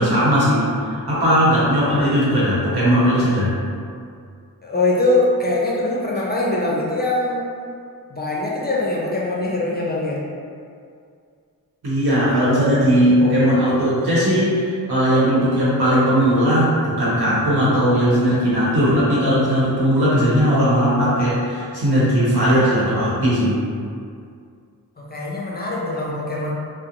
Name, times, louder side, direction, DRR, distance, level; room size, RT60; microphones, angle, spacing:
voice 1, 0.0-3.5 11.8-23.6, equal, 85° right, -8 dB, 1.0 m, -18 dB
voice 2, 4.6-7.4 8.1-10.2 25.0-26.5, left 2 dB, 25° left, -5 dB, 0.5 m, -22 dB
2.5 x 2.0 x 2.9 m, 2.3 s
cardioid pair, 65°, 38 cm